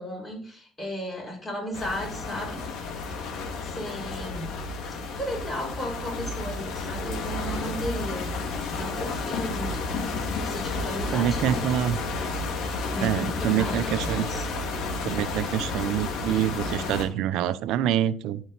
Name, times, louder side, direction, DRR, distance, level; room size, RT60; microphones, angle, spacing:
voice 1, 0.0-2.6 3.6-4.5 4.9-8.3 8.8-9.8 10.4-11.8 12.9-13.9 14.3-14.5, equal, 30° left, -2 dB, 5.3 m, -34 dB
sound 1, 1.7-17.1, left 3 dB, 70° left, 2.1 m, -31 dB
voice 2, 11.1-12.0 13.0-14.3 15.0-18.4, right 11 dB, 75° right, 13 dB, 0.6 m, -26 dB
10.5 x 6.2 x 4.0 m, 0.43 s
supercardioid pair, 85°, 0 cm